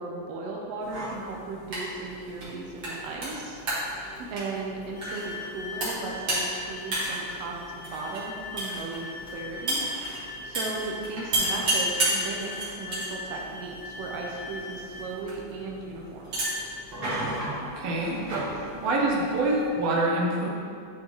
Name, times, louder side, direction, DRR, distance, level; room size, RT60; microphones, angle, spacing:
voice 1, 0.0-3.6 4.3-9.8 10.4-16.4, right 3 dB, 85° right, -1 dB, 1.4 m, -36 dB
sound 1, 0.8-19.7, right 1 dB, 40° right, 2.0 m, -33 dB
sound 2, 4.9-15.1, left 3 dB, 80° left, 1.2 m, -41 dB
voice 2, 17.7-18.5 18.8-20.5, right 2 dB, 65° right, -2 dB, 1.7 m, -26 dB
11.0 x 3.9 x 3.1 m, 2.3 s
omnidirectional pair, 3.7 m